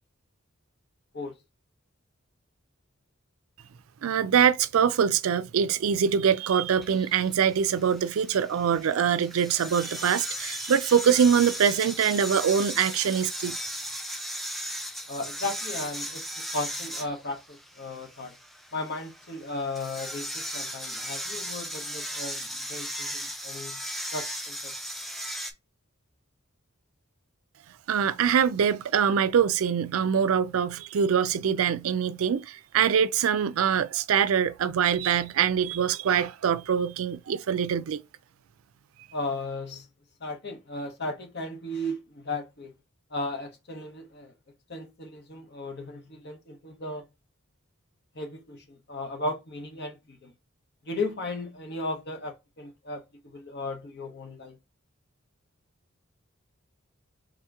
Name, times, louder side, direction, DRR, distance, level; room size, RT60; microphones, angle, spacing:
voice 1, 4.0-13.6 27.9-38.0, right 7 dB, 85° right, 0.4 m, -24 dB
sound 1, 6.8-25.5, equal, ahead, 0.4 m, -37 dB
voice 2, 15.1-18.3 18.7-23.8 24.1-24.7 39.1-39.9 40.2-42.7 43.1-44.3 44.7-47.1 48.1-50.3 50.8-54.6, left 2 dB, 55° left, 1.0 m, -35 dB
3.7 x 2.9 x 3.5 m
head